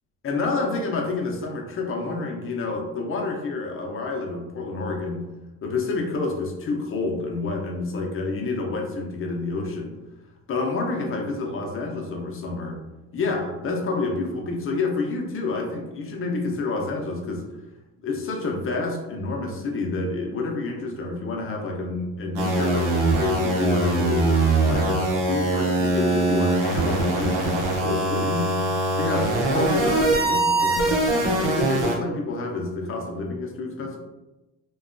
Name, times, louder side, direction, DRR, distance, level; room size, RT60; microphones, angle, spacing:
voice 1, 0.2-5.2 5.6-10.0 10.5-12.8 13.1-17.4 18.0-24.3 24.6-28.5 28.9-34.0, left 3 dB, 40° left, 1 dB, 0.7 m, -28 dB
sound 1, 22.3-31.9, right 2 dB, 85° right, 0.8 m, -22 dB
2.6 x 2.3 x 2.5 m, 1.1 s
supercardioid pair, 85°, 31 cm